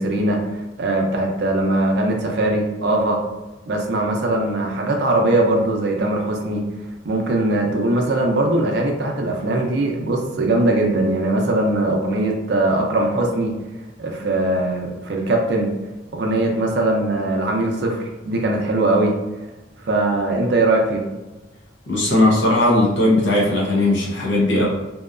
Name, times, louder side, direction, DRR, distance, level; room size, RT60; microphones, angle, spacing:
voice 1, 0.0-3.2 3.7-6.6 7.0-13.5 14.0-15.7 16.1-19.1 19.8-21.1, right 2 dB, 60° right, 1 dB, 0.4 m, -20 dB
voice 2, 21.9-24.7, left 1 dB, 70° left, -4 dB, 0.7 m, -17 dB
2.7 x 2.2 x 2.3 m, 1.1 s
head